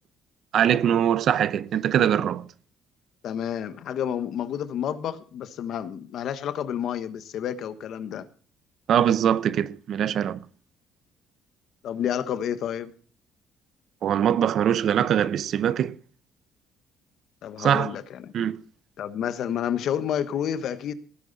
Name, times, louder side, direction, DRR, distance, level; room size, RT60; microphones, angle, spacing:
voice 1, 0.5-2.5 8.9-10.4 14.0-15.9 17.6-17.9 18.3-18.6, right 9 dB, 50° right, 0.8 m, -22 dB
voice 2, 3.2-8.3 11.8-12.9 17.4-18.3 19.0-20.9, left 9 dB, 55° left, 1.3 m, -30 dB
18.5 x 10.5 x 4.1 m
cardioid pair, 165°, 0 cm